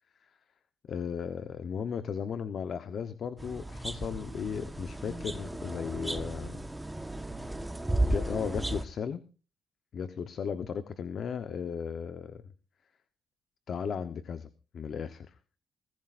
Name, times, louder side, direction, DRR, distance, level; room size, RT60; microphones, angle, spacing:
voice 1, 0.9-6.7 8.0-9.2 9.9-12.4 13.7-15.3, left 7 dB, 55° left, 11 dB, 1.0 m, -36 dB
sound 1, 3.4-8.8, right 1 dB, 10° right, 1.2 m, -34 dB
21.0 x 15.5 x 2.6 m, 0.35 s
cardioid pair, 90°, 0 cm